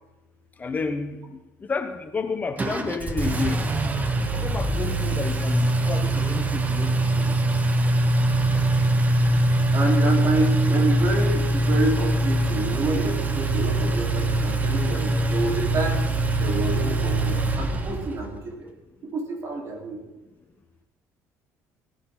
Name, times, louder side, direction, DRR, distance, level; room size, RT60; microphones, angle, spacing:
voice 1, 0.6-3.7 4.3-7.3, left 4 dB, 25° left, 7 dB, 1.0 m, -31 dB
Engine, 2.6-18.3, right 1 dB, 25° right, 1.1 m, -23 dB
voice 2, 9.7-16.1 16.4-18.7 19.0-20.0, right 3 dB, 50° right, 0 dB, 4.0 m, -28 dB
17.5 x 10.0 x 3.9 m, 1.0 s
cardioid pair, 115°, 6 cm